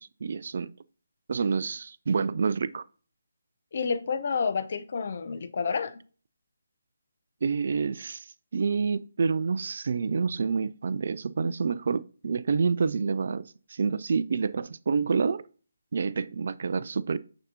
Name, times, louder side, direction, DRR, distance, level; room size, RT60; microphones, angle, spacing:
voice 1, 0.2-0.7 1.3-2.8 7.4-8.3 8.5-15.4 15.9-17.2, right 5 dB, 45° right, 0.3 m, -28 dB
voice 2, 3.7-6.0, left 5 dB, 45° left, 0.6 m, -29 dB
6.5 x 6.2 x 2.7 m
figure-of-eight pair, 150°, 0 cm